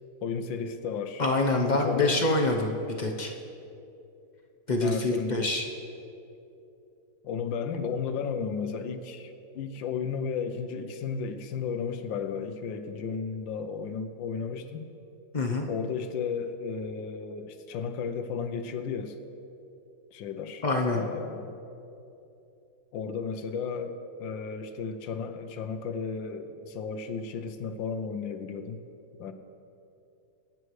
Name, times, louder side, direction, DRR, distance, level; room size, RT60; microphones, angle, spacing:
voice 1, 0.2-1.2 1.7-2.2 4.8-5.4 7.2-14.9 15.7-19.2 20.1-20.6 20.9-21.5 22.9-28.8 29.2-29.3, left 6 dB, 80° left, 8 dB, 1.4 m, -34 dB
voice 2, 1.2-3.3 4.7-5.7 15.3-15.7 20.6-21.0, left 2 dB, 45° left, 1 dB, 0.5 m, -26 dB
23.5 x 8.9 x 3.2 m, 2.8 s
omnidirectional pair, 2.1 m